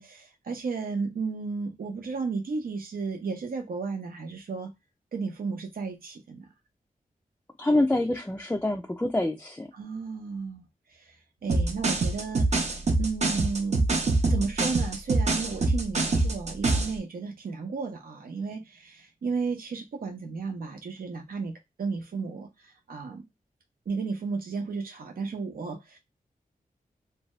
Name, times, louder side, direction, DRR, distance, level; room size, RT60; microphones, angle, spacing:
voice 1, 0.0-4.7 5.1-6.5 9.7-11.1 11.4-13.9 14.3-23.3 23.9-26.0, right 4 dB, 85° right, 0.7 m, -33 dB
voice 2, 7.6-9.7, left 1 dB, 10° left, 0.3 m, -26 dB
sound 1, 11.5-17.0, right 3 dB, 50° right, 0.6 m, -24 dB
2.6 x 2.2 x 3.0 m
wide cardioid pair, 120°, 15 cm